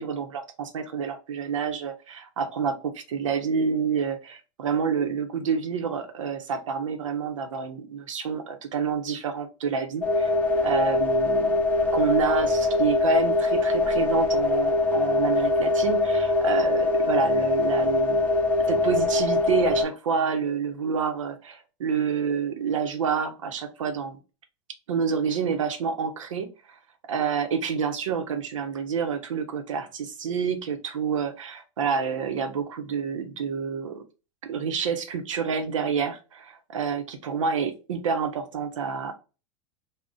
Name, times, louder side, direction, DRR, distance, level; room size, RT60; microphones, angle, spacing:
voice 1, 0.0-10.3 10.6-18.3 18.7-24.2 24.9-26.8 27.1-34.0 34.4-39.1, right 6 dB, 80° right, 7 dB, 0.6 m, -28 dB
sound 1, 10.0-19.8, left 2 dB, 10° left, 0.7 m, -23 dB
2.4 x 2.1 x 3.7 m, 0.32 s
hypercardioid pair, 105°, 16 cm